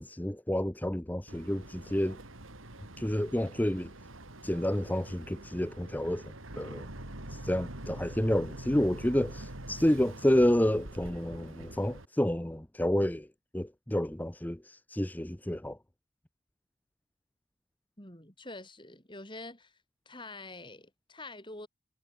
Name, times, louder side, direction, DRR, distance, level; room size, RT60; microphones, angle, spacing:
voice 1, 0.0-2.2 3.0-3.9 4.4-6.9 7.3-13.3 13.5-15.8, left 1 dB, 10° left, 0.7 m, -29 dB
Boat Water vehicle, 1.3-12.1, right 1 dB, 85° right, 4.0 m, -45 dB
voice 2, 18.0-19.7 20.1-21.7, left 2 dB, 25° left, 7.3 m, -46 dB
head